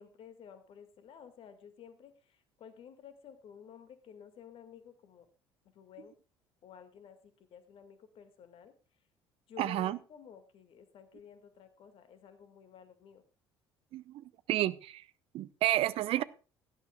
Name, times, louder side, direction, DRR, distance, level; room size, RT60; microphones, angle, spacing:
voice 1, 0.0-5.3 5.7-6.1 6.6-8.7 9.5-13.2, left 7 dB, 45° left, 9 dB, 2.1 m, -53 dB
voice 2, 9.6-10.0 13.9-15.0 15.3-16.2, right 14 dB, 50° right, 16 dB, 0.7 m, -31 dB
17.0 x 11.5 x 2.4 m, 0.34 s
figure-of-eight pair, 55°, 13 cm